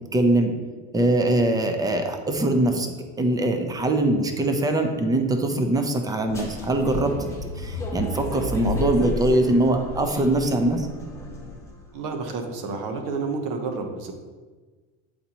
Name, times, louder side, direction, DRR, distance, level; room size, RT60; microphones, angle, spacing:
voice 1, 0.1-0.5 0.9-10.9, right 1 dB, 10° right, 5 dB, 0.6 m, -22 dB
sound 1, 6.3-11.9, left 2 dB, 5° left, 1.3 m, -32 dB
voice 2, 11.9-14.1, right 4 dB, 55° right, 5 dB, 1.1 m, -30 dB
8.1 x 4.3 x 3.0 m, 1.4 s
supercardioid pair, 110°, 38 cm